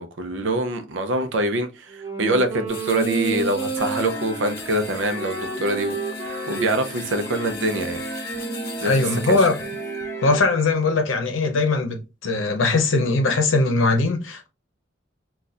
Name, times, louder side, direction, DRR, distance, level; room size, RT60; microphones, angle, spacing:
voice 1, 0.0-6.0 6.2-8.0 8.8-8.9 9.3-9.5, right 2 dB, 75° right, 0.6 m, -24 dB
Wind instrument woodwind instrument, 1.9-10.6, right 5 dB, 15° right, 1.0 m, -32 dB
sound 1, 2.7-10.0, left 5 dB, 50° left, 0.9 m, -41 dB
sound 2, 3.8-10.4, left 1 dB, 15° left, 0.4 m, -36 dB
voice 2, 8.8-9.6 10.2-14.5, left 3 dB, 85° left, 0.7 m, -20 dB
4.0 x 2.3 x 2.4 m
head